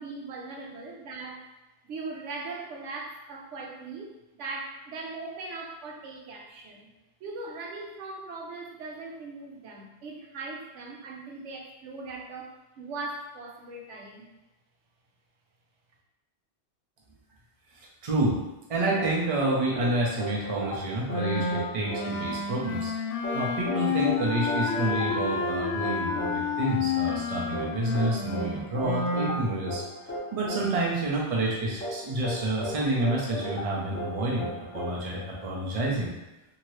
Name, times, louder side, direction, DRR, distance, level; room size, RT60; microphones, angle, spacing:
voice 1, 0.0-1.5 1.9-6.9 7.2-14.3, right 3 dB, 85° right, 0 dB, 0.9 m, -39 dB
voice 2, 18.0-18.4 18.7-22.9 23.3-29.8 30.3-34.5 34.7-36.1, right 2 dB, 40° right, -3 dB, 0.6 m, -29 dB
sound 1, 18.9-35.8, right 1 dB, 10° left, 0.8 m, -37 dB
Wind instrument woodwind instrument, 21.1-29.4, left 4 dB, 90° left, 0.9 m, -30 dB
2.8 x 2.7 x 3.1 m, 0.99 s
omnidirectional pair, 1.2 m